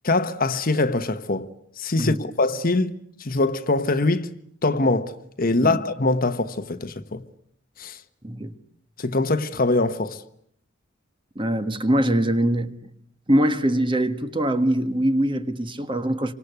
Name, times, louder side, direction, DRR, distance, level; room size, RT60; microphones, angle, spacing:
voice 1, 0.0-1.5 1.8-2.9 3.2-4.3 4.6-7.2 7.8-8.0 9.0-10.2, left 2 dB, 45° left, 1.2 m, -23 dB
voice 2, 11.3-12.8 13.3-16.3, right 1 dB, 25° right, 1.5 m, -22 dB
29.0 x 25.5 x 8.2 m
head